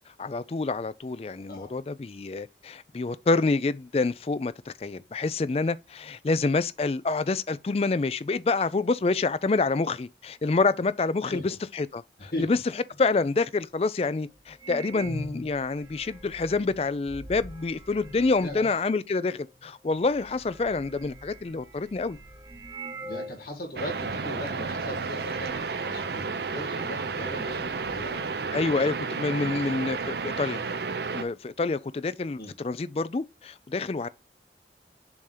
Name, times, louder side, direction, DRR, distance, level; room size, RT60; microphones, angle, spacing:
voice 1, 0.2-12.6 13.0-22.2 28.5-30.6 31.1-34.1, left 3 dB, 35° left, 0.4 m, -27 dB
voice 2, 12.2-12.5 18.4-18.7 23.0-28.3 32.4-32.5, left 1 dB, 55° left, 2.1 m, -38 dB
sound 1, 13.9-14.0 14.5-18.8 19.6-19.7 19.9-23.5 23.8-23.9 24.5-24.8 25.1-25.6 26.9-27.0 27.4-29.0 29.2-29.3 29.6-30.3, right 1 dB, 20° right, 1.1 m, -44 dB
sound 2, 23.8-31.2, right 4 dB, 65° right, 0.6 m, -32 dB
sound 3, 25.8-32.0, left 6 dB, 5° left, 1.0 m, -59 dB
7.1 x 2.8 x 4.9 m
head